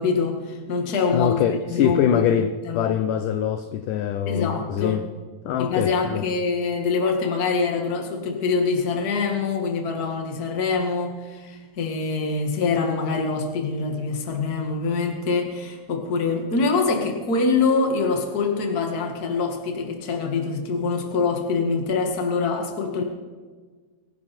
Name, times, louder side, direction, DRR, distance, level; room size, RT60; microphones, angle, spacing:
voice 1, 0.0-1.4 1.7-2.3 2.6-2.8 4.2-5.0 5.6-23.0, left 4 dB, 35° left, 1.7 m, -24 dB
voice 2, 1.1-5.1 5.5-6.2, left 9 dB, 80° left, 1.9 m, -23 dB
24.0 x 10.5 x 4.4 m
omnidirectional pair, 4.4 m